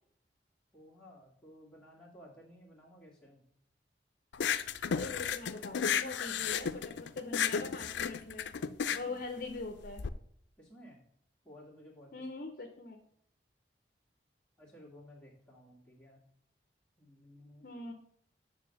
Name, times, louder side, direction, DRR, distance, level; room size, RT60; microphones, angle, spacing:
voice 1, 0.7-3.4 8.9-9.2 10.6-11.0 11.4-12.3 14.6-16.2 17.0-17.7, equal, 5° left, -5 dB, 2.0 m, -55 dB
sound 1, 4.3-10.1, left 7 dB, 85° left, 0.4 m, -33 dB
voice 2, 4.9-8.5 8.9-10.0 12.1-13.0 17.6-17.9, left 3 dB, 50° left, 4 dB, 0.8 m, -42 dB
9.1 x 3.5 x 6.4 m, 0.69 s
head